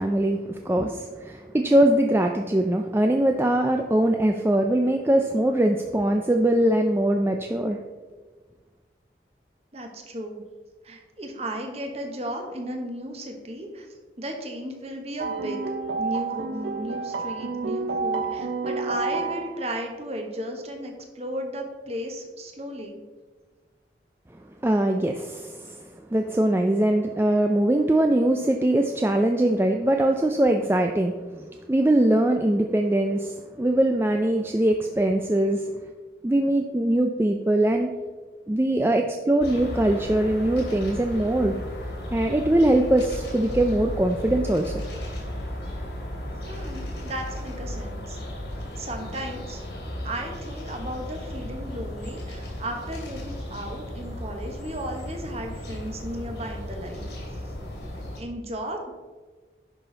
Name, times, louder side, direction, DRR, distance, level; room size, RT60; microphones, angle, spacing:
voice 1, 0.0-7.8 24.6-35.7 36.2-37.9 38.5-41.5 42.1-44.8, right 1 dB, 15° right, 4 dB, 0.3 m, -22 dB
voice 2, 9.7-10.4 10.8-13.9 14.2-15.6 16.0-23.0 46.4-48.2 48.8-49.6 50.0-57.1 58.2-58.9, right 1 dB, 35° right, 3 dB, 1.2 m, -35 dB
sound 1, 15.2-19.8, right 4 dB, 80° right, 0.6 m, -30 dB
sound 2, 39.4-58.2, left 1 dB, 90° left, 2.6 m, -35 dB
10.0 x 6.0 x 4.0 m, 1.4 s
head